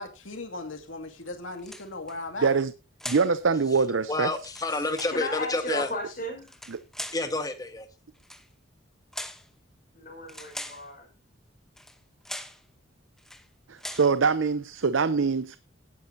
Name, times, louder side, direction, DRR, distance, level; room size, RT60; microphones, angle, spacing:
voice 1, 0.0-2.5, left 2 dB, 85° left, 2.4 m, -37 dB
sound 1, 1.6-2.2 3.0-3.4 4.3-5.2 6.4-7.3 8.2-8.5 9.1-9.5 10.3-10.9 11.8-12.0 12.2-12.6 13.2-13.5 13.8-14.1, left 1 dB, ahead, 0.9 m, -40 dB
voice 2, 2.4-2.7 3.1-4.3 6.7-6.8 13.7-15.6, right 5 dB, 80° right, 0.7 m, -24 dB
voice 3, 4.1-5.9 7.1-7.9, left 2 dB, 20° left, 1.5 m, -29 dB
voice 4, 5.1-6.5 9.9-11.1, left 1 dB, 45° left, 5.2 m, -34 dB
17.5 x 10.0 x 2.8 m
head